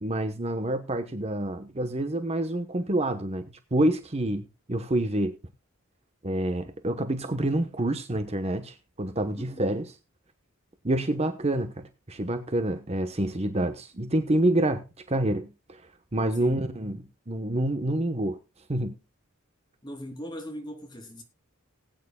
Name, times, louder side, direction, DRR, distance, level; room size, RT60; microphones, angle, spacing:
voice 1, 0.0-3.4 3.7-5.3 6.2-9.9 10.8-15.8 16.1-18.4 18.7-18.9, right 1 dB, 30° right, 1.0 m, -27 dB
voice 2, 9.4-9.7 16.4-16.6 19.8-21.2, equal, 20° left, 3.0 m, -40 dB
19.5 x 9.3 x 2.3 m
head